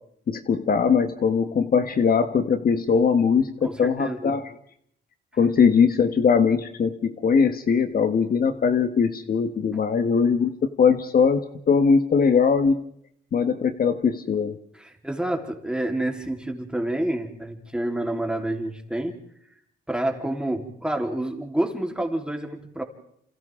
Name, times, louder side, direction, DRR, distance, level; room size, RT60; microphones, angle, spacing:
voice 1, 0.3-4.5 5.4-10.5 10.8-12.8 13.3-14.6, left 6 dB, 50° left, 8 dB, 1.4 m, -21 dB
voice 2, 3.6-4.3 14.8-19.2 19.9-22.8, right 1 dB, 5° right, 2 dB, 3.7 m, -28 dB
29.0 x 27.5 x 3.7 m, 0.70 s
cardioid pair, 90°, 20 cm